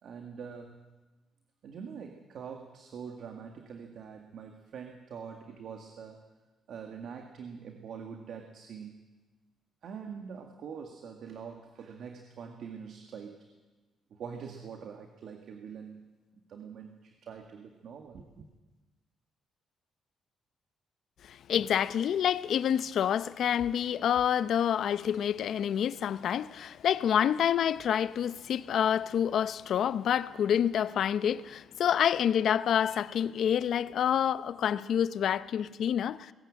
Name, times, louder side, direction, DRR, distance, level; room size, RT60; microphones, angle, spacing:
voice 1, 0.0-0.7 1.6-6.2 6.7-9.0 9.8-13.5 14.1-16.1 16.5-18.5, right 6 dB, 65° right, 2.1 m, -44 dB
voice 2, 21.3-36.3, left 9 dB, 65° left, 0.7 m, -28 dB
20.0 x 16.5 x 8.8 m
cardioid pair, 90°, 0 cm